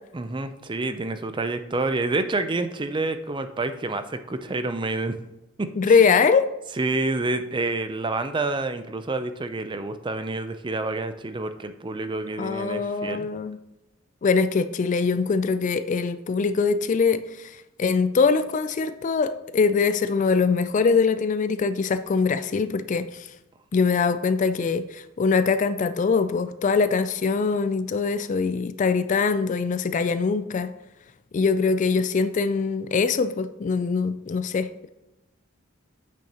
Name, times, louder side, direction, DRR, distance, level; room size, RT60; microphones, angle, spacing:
voice 1, 0.1-5.2 5.6-6.0 6.8-13.3, right 2 dB, 25° right, 10 dB, 0.5 m, -28 dB
voice 2, 5.8-6.5 12.4-13.6 14.2-17.5 17.8-23.3 23.7-30.7 31.3-34.9, left 5 dB, 35° left, 12 dB, 0.3 m, -23 dB
8.6 x 6.2 x 2.9 m, 0.94 s
head